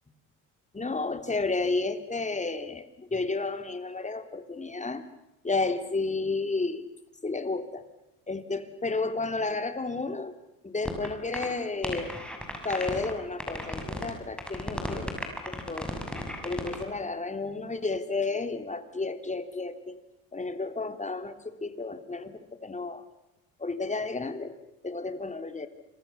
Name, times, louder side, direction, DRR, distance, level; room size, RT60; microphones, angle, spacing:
voice 1, 0.7-5.0 5.4-6.9 7.2-7.8 8.3-10.3 10.6-12.1 12.6-15.9 16.4-20.0 20.3-23.0 23.6-24.5 24.8-25.7, left 3 dB, 20° left, 9 dB, 3.2 m, -32 dB
sound 1, 10.8-11.1 11.3-11.5 11.8-13.1 13.4-14.1 14.4-16.8, equal, ahead, 6.2 m, -34 dB
28.5 x 25.0 x 7.0 m, 0.90 s
supercardioid pair, 85°, 40 cm